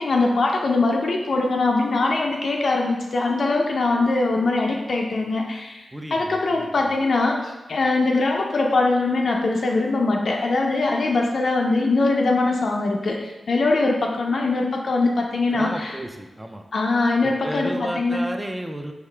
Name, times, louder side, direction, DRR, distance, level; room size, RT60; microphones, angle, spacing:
voice 1, 0.0-15.9 16.7-18.2, left 3 dB, 60° left, 1 dB, 0.4 m, -22 dB
voice 2, 5.9-6.7 15.5-16.6 17.2-18.9, right 1 dB, 10° right, 4 dB, 0.3 m, -33 dB
4.8 x 2.8 x 3.3 m, 1.1 s
wide cardioid pair, 140°, 0 cm